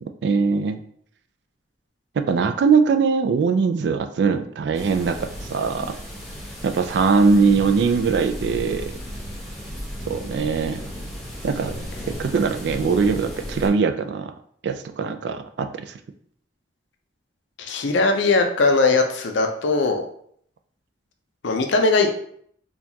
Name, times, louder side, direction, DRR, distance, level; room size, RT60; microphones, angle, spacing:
voice 1, 0.0-0.8 2.2-5.9 6.6-8.9 10.1-10.8 11.4-11.7 12.1-14.3 14.6-16.0, right 5 dB, 65° right, 8 dB, 0.3 m, -21 dB
sound 1, 4.7-13.7, equal, ahead, 0.8 m, -35 dB
voice 2, 17.6-20.0 21.4-22.1, left 3 dB, 75° left, 4 dB, 0.5 m, -20 dB
4.4 x 2.3 x 2.7 m, 0.64 s
head